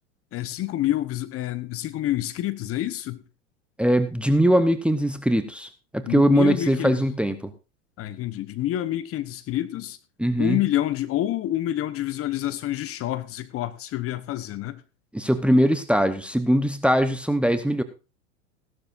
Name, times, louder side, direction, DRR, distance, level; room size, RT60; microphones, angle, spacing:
voice 1, 0.3-3.2 6.0-7.0 8.0-10.0 10.4-14.8, left 13 dB, 35° left, 1.0 m, -27 dB
voice 2, 3.8-5.7 5.9-7.5 10.2-10.6 15.1-17.8, right 1 dB, 5° right, 0.9 m, -21 dB
16.0 x 12.0 x 2.6 m
hypercardioid pair, 100°, 39 cm